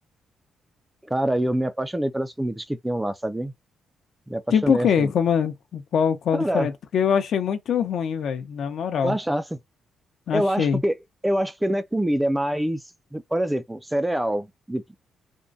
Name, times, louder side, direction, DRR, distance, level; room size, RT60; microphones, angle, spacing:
voice 1, 1.1-3.5 4.3-5.1 6.3-6.7 9.0-9.6 10.3-11.0 11.2-12.8 13.1-14.8, right 1 dB, 5° right, 0.3 m, -25 dB
voice 2, 4.5-9.2 10.3-10.8, left 7 dB, 65° left, 0.7 m, -23 dB
3.6 x 2.1 x 2.6 m
cardioid pair, 125°, 0 cm